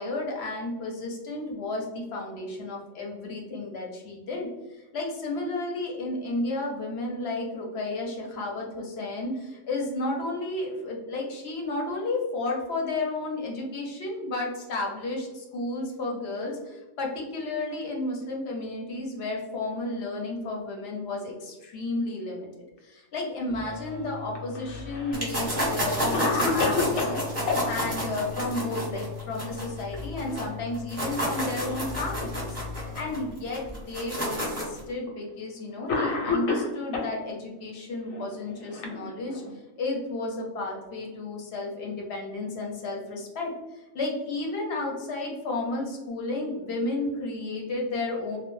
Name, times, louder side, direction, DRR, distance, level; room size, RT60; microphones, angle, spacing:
voice 1, 0.0-22.5 22.8-48.4, left 2 dB, 65° left, -1 dB, 0.7 m, -32 dB
sound 1, 23.5-33.7, left 7 dB, 60° right, 0.5 m, -40 dB
Cough, 24.3-25.2 25.7-25.8 26.1-27.7 29.5-30.0 30.3-30.4 31.2-31.9 32.7-32.8 33.8-33.9 35.1-35.3 35.9-37.1 38.1-39.5, left 4 dB, 90° left, 1.0 m, -29 dB
sound 2, 25.1-30.4 30.7-34.8, right 1 dB, 15° right, 0.6 m, -30 dB
2.1 x 2.0 x 3.0 m, 1.1 s
omnidirectional pair, 1.3 m